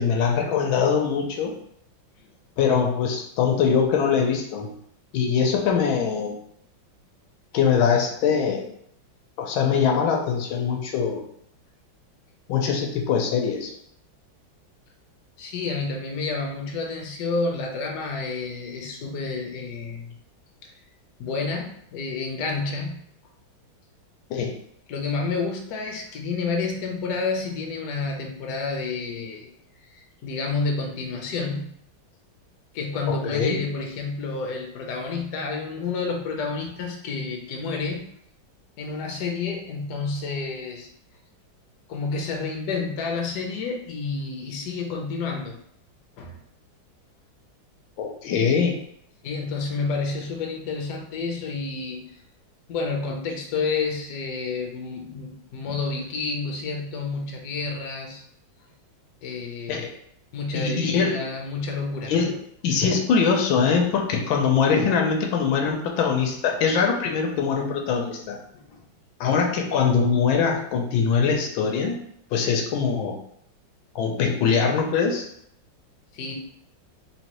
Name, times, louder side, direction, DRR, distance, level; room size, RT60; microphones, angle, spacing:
voice 1, 0.0-1.5 2.6-4.7 5.1-6.3 7.5-8.6 9.4-11.2 12.5-13.7 24.3-24.5 33.1-33.6 48.0-48.8 59.7-59.9 60.5-61.2 62.1-62.4 62.6-68.4 69.2-72.0 72.3-73.2 73.9-75.3, left 6 dB, 85° left, 2 dB, 1.4 m, -22 dB
voice 2, 15.4-20.1 20.6-20.7 21.2-23.0 24.9-29.5 29.9-31.7 32.7-38.0 38.8-40.9 41.9-45.6 46.2-46.4 49.2-52.1 52.7-58.2 59.2-59.9 60.3-62.1 68.5-68.8 76.1-76.3, left 4 dB, 65° left, 1 dB, 1.1 m, -29 dB
3.8 x 3.1 x 2.9 m, 0.69 s
omnidirectional pair, 2.2 m